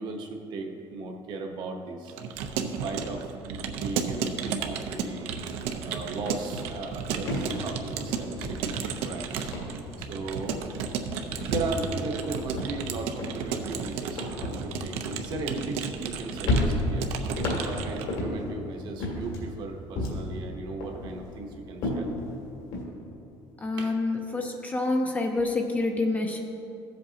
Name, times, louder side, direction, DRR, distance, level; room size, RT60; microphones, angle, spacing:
voice 1, 0.0-2.1 2.6-5.4 5.8-10.6 11.2-22.1 23.8-23.9, right 3 dB, 45° right, 3 dB, 0.9 m, -37 dB
Keyboard (musical) / Computer keyboard, 2.1-18.2, right 7 dB, 75° right, 0.7 m, -33 dB
sound 1, 5.6-5.8 6.1-9.1 9.4-10.2 10.5-10.9 11.4-16.1 16.4-18.6 19.0-20.4 20.8-22.8, left 1 dB, 70° left, 2.3 m, -32 dB
voice 2, 23.6-26.4, left 2 dB, 15° left, 3 dB, 0.5 m, -27 dB
15.0 x 7.7 x 2.8 m, 2.8 s
cardioid pair, 175°, 11 cm